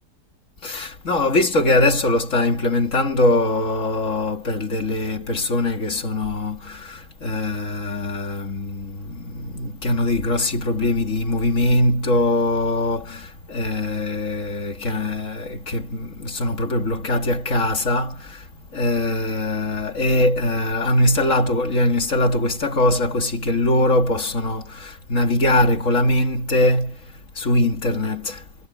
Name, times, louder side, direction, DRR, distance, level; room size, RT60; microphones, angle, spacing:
voice 1, 0.6-28.4, left 1 dB, 50° left, 2.6 m, -22 dB
omnidirectional pair, 1.8 m